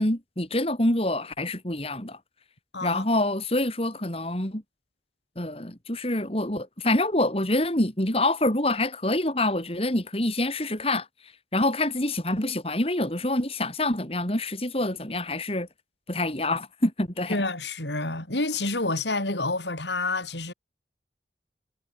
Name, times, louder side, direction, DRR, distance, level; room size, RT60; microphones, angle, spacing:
voice 1, 0.0-2.2 2.8-4.6 5.4-11.1 11.5-15.7 16.1-17.4, left 1 dB, 35° left, 3.7 m, -26 dB
voice 2, 17.3-20.5, left 2 dB, 80° left, 7.7 m, -28 dB
head